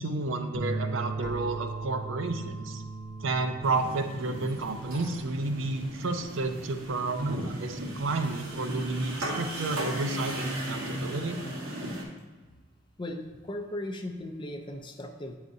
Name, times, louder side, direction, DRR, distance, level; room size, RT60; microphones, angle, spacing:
voice 1, 0.0-2.8 3.2-11.4, right 3 dB, 65° right, 6 dB, 0.5 m, -31 dB
sound 1, 0.5-9.0, right 3 dB, 40° right, 0.9 m, -40 dB
sound 2, 1.2-9.1, equal, 70° left, 0.8 m, -50 dB
sound 3, 3.6-12.0, right 1 dB, 85° right, 1.2 m, -36 dB
voice 2, 13.0-15.4, left 1 dB, 25° left, 4 dB, 0.5 m, -37 dB
8.7 x 4.8 x 2.7 m, 1.3 s
head